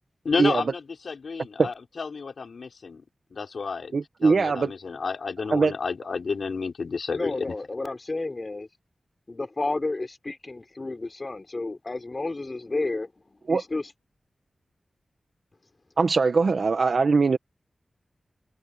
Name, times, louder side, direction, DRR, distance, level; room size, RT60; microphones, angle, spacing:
voice 1, 0.2-3.0 3.3-4.0 4.2-7.6, left 5 dB, 75° left, 5.5 m, -31 dB
voice 2, 3.9-4.7 5.5-5.7 13.5-13.6 16.0-17.4, right 4 dB, 65° right, 1.2 m, -21 dB
voice 3, 7.1-8.7 9.3-13.1 13.5-13.9, left 2 dB, 40° left, 3.8 m, -31 dB
wide cardioid pair, 70°, 0 cm